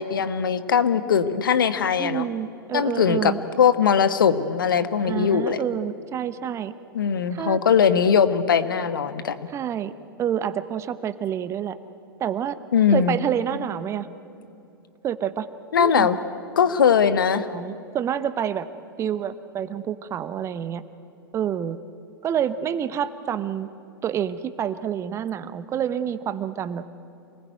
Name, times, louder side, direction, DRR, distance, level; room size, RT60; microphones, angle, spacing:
voice 1, 0.0-2.3 2.7-5.6 6.9-9.4 12.7-13.2 15.7-16.1 16.6-17.5, left 7 dB, 65° left, 11 dB, 1.3 m, -20 dB
voice 2, 2.0-3.4 5.0-6.7 7.3-7.6 9.5-9.9 10.2-11.8 12.2-12.6 12.9-14.1 15.0-15.5 15.8-16.1 17.3-18.7 19.0-20.8 21.3-21.8 22.2-23.7 24.0-26.8, right 9 dB, 25° right, 14 dB, 1.0 m, -28 dB
28.0 x 20.5 x 9.3 m, 2.7 s
figure-of-eight pair, 100°, 12 cm